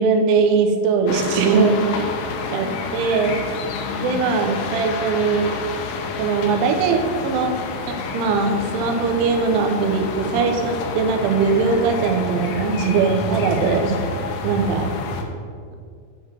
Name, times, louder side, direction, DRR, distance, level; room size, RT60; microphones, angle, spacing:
voice 1, 0.0-2.1 2.5-2.7 2.9-3.4 4.0-5.6 6.2-7.6 7.9-13.9 14.4-14.9, right 5 dB, 85° right, 4 dB, 3.3 m, -20 dB
sound 1, 1.1-15.2, left 4 dB, 85° left, 3.4 m, -29 dB
9.8 x 3.8 x 7.2 m, 2.2 s
omnidirectional pair, 5.4 m